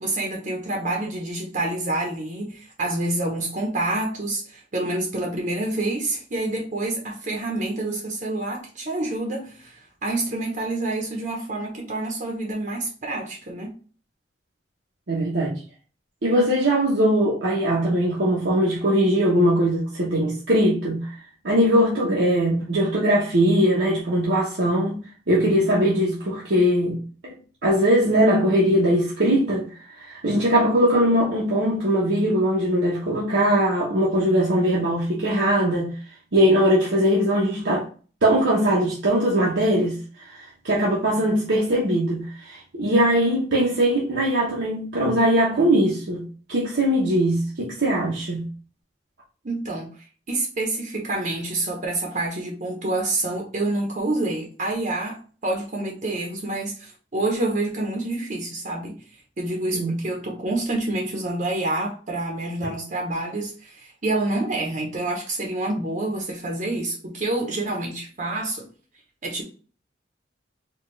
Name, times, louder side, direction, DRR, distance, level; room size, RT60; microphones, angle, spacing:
voice 1, 0.0-13.7 49.4-49.9 50.3-59.0 59.4-68.7 69.2-69.4, right 2 dB, 45° right, 0.8 m, -27 dB
voice 2, 15.1-15.6 16.2-21.1 21.4-27.3 27.6-29.7 30.0-35.9 36.3-37.9 38.2-40.0 40.2-48.5 59.7-59.9 62.6-62.7, equal, 85° right, 0.9 m, -21 dB
4.3 x 2.4 x 3.1 m
head